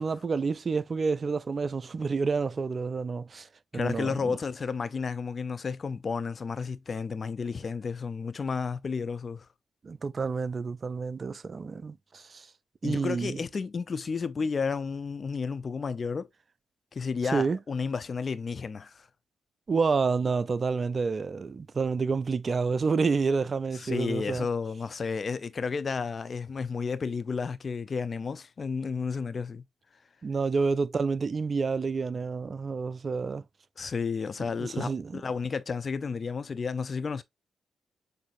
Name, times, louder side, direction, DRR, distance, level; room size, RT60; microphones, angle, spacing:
voice 1, 0.0-3.5 3.7-4.4 9.8-12.5 12.8-13.4 17.3-17.6 19.7-24.5 30.2-33.4 34.6-35.2, right 4 dB, 45° right, 0.3 m, -29 dB
voice 2, 3.7-9.5 12.8-16.3 16.9-19.1 23.7-29.6 33.8-37.2, left 5 dB, 50° left, 0.4 m, -32 dB
6.2 x 2.7 x 2.4 m
hypercardioid pair, 40°, 0 cm